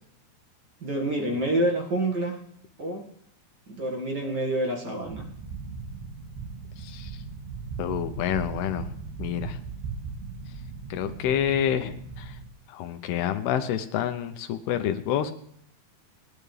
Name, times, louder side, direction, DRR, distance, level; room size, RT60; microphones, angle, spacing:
voice 1, 0.8-2.4 2.8-3.1 3.7-5.2, right 1 dB, 45° right, 0 dB, 1.5 m, -27 dB
sound 1, 5.0-12.5, right 5 dB, 85° right, 4.4 m, -38 dB
voice 2, 6.8-7.2 7.8-8.9 9.2-9.6 10.9-12.4 12.7-15.3, left 10 dB, 80° left, 8 dB, 2.6 m, -28 dB
21.5 x 11.0 x 3.3 m, 0.69 s
omnidirectional pair, 4.8 m